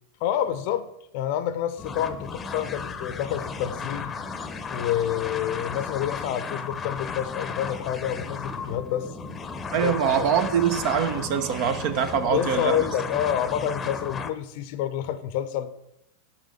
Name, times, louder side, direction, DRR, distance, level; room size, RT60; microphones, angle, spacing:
voice 1, 0.2-0.9 1.1-4.1 4.7-9.1 9.8-10.3 12.3-15.7, left 10 dB, 45° left, 13 dB, 0.7 m, -28 dB
sound 1, 1.8-14.3, left 5 dB, 20° left, 0.9 m, -34 dB
voice 2, 9.7-12.8, right 7 dB, 45° right, 10 dB, 0.9 m, -24 dB
10.0 x 5.7 x 6.5 m, 0.82 s
figure-of-eight pair, 90°, 0 cm